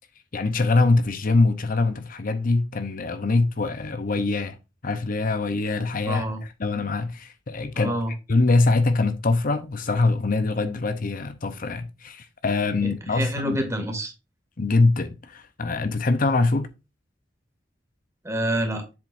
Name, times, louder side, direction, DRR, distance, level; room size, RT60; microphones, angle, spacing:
voice 1, 0.3-4.6 4.8-7.9 8.3-13.6 14.6-16.7, left 3 dB, 50° left, 0.7 m, -23 dB
voice 2, 6.1-6.4 7.8-8.1 12.8-14.1 18.2-18.8, right 1 dB, 15° right, 2.4 m, -27 dB
7.7 x 7.3 x 2.6 m
head